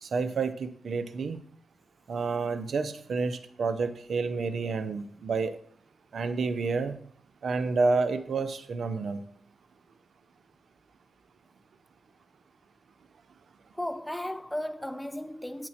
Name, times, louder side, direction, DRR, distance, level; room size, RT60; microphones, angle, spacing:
voice 1, 0.0-1.4 2.1-5.6 6.1-7.0 7.4-9.2, right 4 dB, 75° right, 0.6 m, -29 dB
voice 2, 13.7-15.7, left 1 dB, 5° left, 0.6 m, -35 dB
9.5 x 4.5 x 4.2 m
cardioid pair, 60°, 0 cm